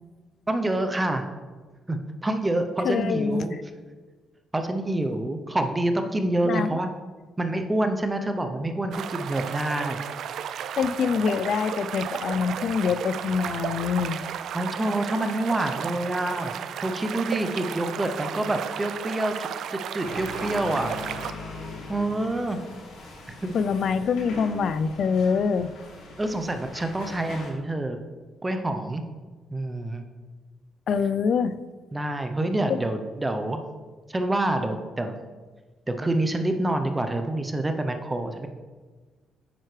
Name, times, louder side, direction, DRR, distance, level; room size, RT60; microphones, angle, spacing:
voice 1, 0.5-1.2 1.9-3.6 4.5-6.9 7.4-10.0 14.5-16.5 16.8-20.9 21.9-22.6 23.3-23.5 26.2-28.0 28.4-29.0 29.5-30.0 31.9-33.6 34.1-35.2 35.9-38.5, right 1 dB, 15° right, 7 dB, 0.6 m, -27 dB
voice 2, 2.8-3.5 6.4-6.8 10.8-14.2 23.5-25.7 30.9-31.5 32.7-32.8, left 6 dB, 60° left, 13 dB, 0.4 m, -25 dB
sound 1, 8.9-21.3, right 8 dB, 70° right, 0.3 m, -34 dB
sound 2, 20.0-27.5, left 2 dB, 85° left, 2.1 m, -41 dB
9.2 x 5.7 x 3.2 m, 1.4 s
cardioid pair, 90°, 0 cm